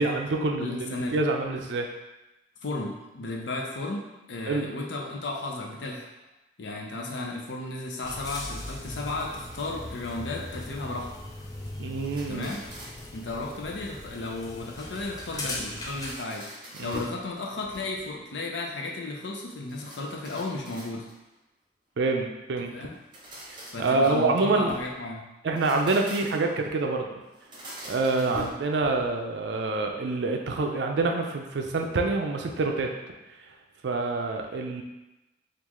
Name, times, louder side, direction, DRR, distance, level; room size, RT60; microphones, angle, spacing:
voice 1, 0.0-1.9 4.5-4.7 11.8-12.5 16.8-17.0 22.0-22.7 23.8-24.7 25.4-27.2 27.9-32.9 33.8-34.8, right 3 dB, 70° right, 2 dB, 0.4 m, -26 dB
voice 2, 0.6-1.2 2.6-6.1 6.6-11.1 12.3-12.6 13.1-21.1 22.7-22.9 23.7-25.2 28.3-28.4, left 2 dB, 75° left, 0 dB, 0.6 m, -34 dB
sound 1, 8.0-16.2, left 1 dB, 20° left, 0.3 m, -39 dB
sound 2, 12.0-13.2 15.6-17.2 17.6-18.2 19.7-21.3 22.9-24.9 25.4-26.6 27.3-29.2, equal, 25° right, 0.7 m, -44 dB
3.7 x 2.5 x 3.0 m, 1.0 s
head